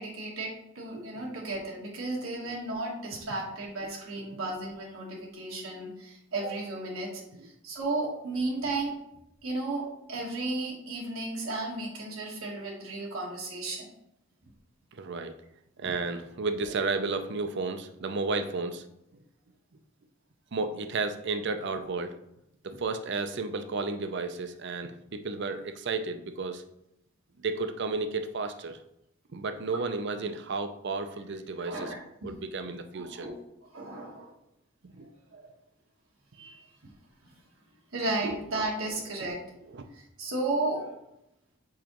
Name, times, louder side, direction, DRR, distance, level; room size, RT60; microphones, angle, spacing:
voice 1, 0.0-7.2 7.6-9.0 9.4-13.9 16.6-16.7 31.6-32.0 32.9-33.3 33.7-34.3 35.3-35.5 36.3-36.6 37.9-39.4 39.9-41.0, right 2 dB, 90° right, -2 dB, 1.4 m, -34 dB
voice 2, 14.9-15.4 15.8-18.8 19.1-19.2 20.5-22.2 22.6-26.7 27.4-28.8 29.3-31.9 32.2-33.3 34.9-35.1 38.2-38.4 39.7-39.8, right 3 dB, 60° right, 8 dB, 0.6 m, -33 dB
7.2 x 4.9 x 3.0 m, 0.82 s
head